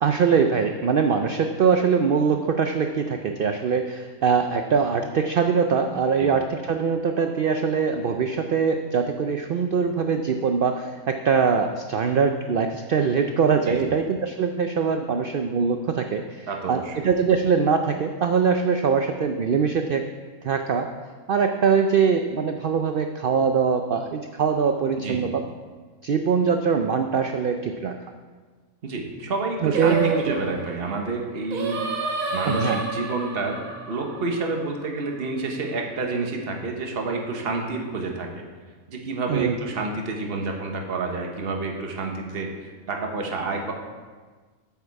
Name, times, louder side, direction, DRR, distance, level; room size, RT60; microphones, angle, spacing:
voice 1, 0.0-20.1 20.4-20.9 21.3-25.4 26.0-28.0 29.6-30.2 32.4-32.8 39.3-39.6, right 6 dB, 90° right, 6 dB, 0.4 m, -22 dB
voice 2, 16.5-17.1 25.0-25.3 28.8-31.8 32.3-38.4 38.9-43.7, right 3 dB, 45° right, 2 dB, 1.2 m, -29 dB
Singing, 29.7-35.0, right 3 dB, 70° right, 1.6 m, -30 dB
8.3 x 8.1 x 4.7 m, 1.4 s
omnidirectional pair, 1.5 m